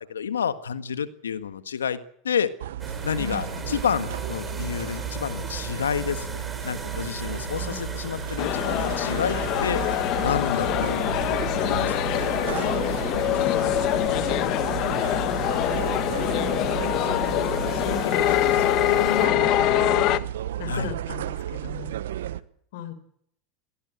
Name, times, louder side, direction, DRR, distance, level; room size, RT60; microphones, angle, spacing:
voice 1, 0.1-2.0 2.2-2.5 3.0-9.8 10.2-11.0 11.6-12.2 20.7-20.9, left 7 dB, 85° left, 12 dB, 1.5 m, -29 dB
sound 1, 2.6-22.4, right 12 dB, 75° right, 1.0 m, -33 dB
sound 2, 2.8-19.3, right 3 dB, 20° right, 4.2 m, -37 dB
voice 2, 3.2-3.5 7.5-8.2 10.5-11.3 12.8-14.6 15.2-20.3 20.6-21.9 22.7-22.9, left 7 dB, 70° left, 12 dB, 4.5 m, -36 dB
sound 3, 8.4-20.2, left 16 dB, 55° left, 1.2 m, -24 dB
22.5 x 18.0 x 8.1 m, 0.67 s
hypercardioid pair, 85°, 0 cm